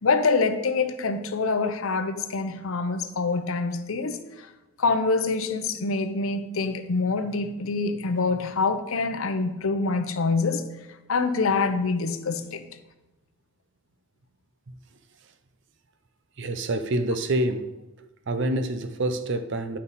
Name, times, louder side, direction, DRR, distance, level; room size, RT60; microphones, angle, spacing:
voice 1, 0.0-4.5 4.8-10.6 11.1-12.7, left 4 dB, 70° left, 0.7 m, -25 dB
voice 2, 16.4-17.7 18.3-19.8, right 1 dB, 55° right, 0.6 m, -27 dB
9.7 x 5.3 x 4.1 m
head